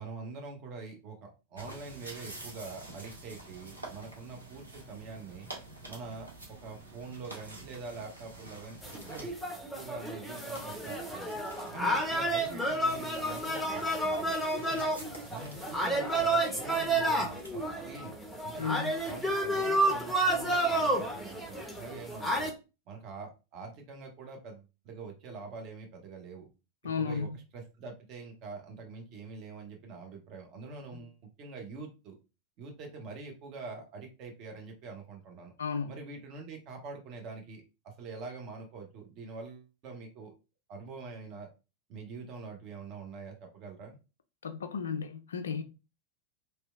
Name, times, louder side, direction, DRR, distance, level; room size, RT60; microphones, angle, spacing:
voice 1, 0.0-5.5 5.9-8.8 9.1-9.3 9.7-11.3 11.7-14.9 15.3-18.1 18.4-18.7 19.0-22.5 22.9-26.5 27.0-32.2 32.6-35.5 35.9-37.6 38.0-40.3 40.7-41.5 41.9-44.0, right 4 dB, 40° right, 0.7 m, -45 dB
sound 1, 1.6-9.3 10.3-18.0, right 2 dB, 80° right, 0.7 m, -49 dB
sound 2, 8.8-22.5, right 1 dB, ahead, 0.6 m, -31 dB
voice 2, 18.6-18.9 26.8-27.4 35.6-35.9 44.4-45.6, left 6 dB, 65° left, 0.3 m, -34 dB
2.8 x 2.1 x 2.4 m
figure-of-eight pair, 90°, 0 cm